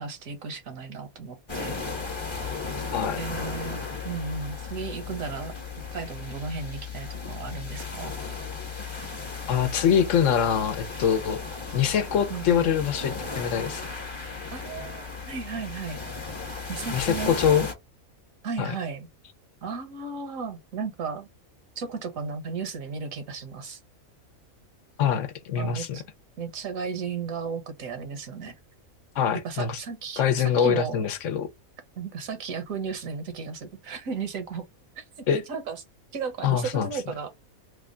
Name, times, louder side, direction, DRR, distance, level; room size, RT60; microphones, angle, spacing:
voice 1, 0.0-1.7 3.2-5.5 5.9-8.1 12.3-12.8 14.2-16.0 16.7-17.4 18.4-19.1 19.6-21.3 21.8-23.8 25.5-26.0 26.4-28.6 29.4-31.0 32.0-34.6 35.0-35.1 35.3-35.8 36.1-37.3, right 5 dB, 75° right, 1.3 m, -35 dB
sound 1, 1.5-17.7, left 4 dB, 25° left, 0.9 m, -35 dB
voice 2, 2.9-3.2 9.5-11.4 11.7-13.8 16.9-17.7 18.6-18.7 25.0-26.0 29.1-29.8 30.2-31.5 35.3-35.4 36.4-36.9, left 8 dB, 70° left, 0.9 m, -24 dB
3.4 x 2.2 x 3.7 m
omnidirectional pair, 1.4 m